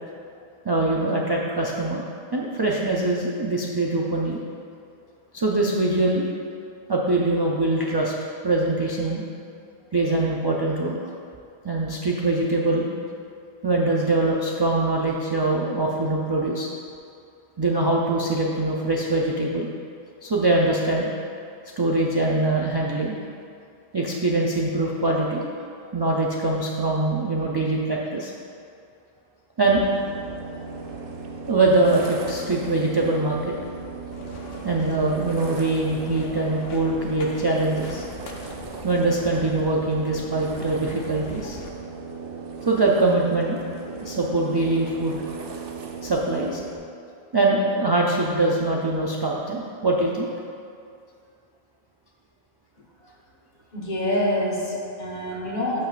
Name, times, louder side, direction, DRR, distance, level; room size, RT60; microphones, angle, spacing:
voice 1, 0.6-2.0 2.3-4.4 5.3-6.3 6.9-8.1 8.4-9.2 9.9-11.1 11.6-12.9 13.6-16.7 17.6-19.7 20.2-21.1 21.8-23.2 23.9-25.4 25.9-28.3 29.6-29.9 31.5-33.5 34.6-38.0 38.8-41.6 42.7-43.6 44.0-45.2 46.0-46.6 47.3-50.3, right 2 dB, 35° right, -3 dB, 0.4 m, -23 dB
sound 1, 29.6-46.8, right 4 dB, 65° right, 0.8 m, -37 dB
sound 2, 34.1-41.7, left 3 dB, 70° left, 0.9 m, -41 dB
voice 2, 53.7-55.9, left 1 dB, 45° left, -4 dB, 1.3 m, -26 dB
11.5 x 5.4 x 2.4 m, 2.5 s
omnidirectional pair, 1.1 m